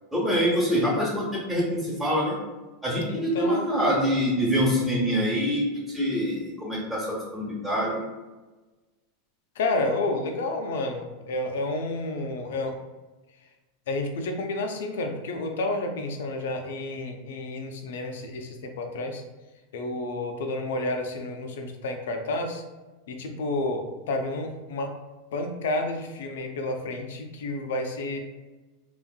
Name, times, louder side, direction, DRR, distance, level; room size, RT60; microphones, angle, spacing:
voice 1, 0.1-2.4 2.8-8.0, equal, 5° right, -8 dB, 0.9 m, -25 dB
voice 2, 3.1-3.7 9.6-12.8 13.9-19.2 19.7-22.6 23.1-24.9 25.3-28.3, left 2 dB, 75° left, 4 dB, 0.5 m, -30 dB
3.8 x 2.5 x 2.2 m, 1.2 s
hypercardioid pair, 95°, 0 cm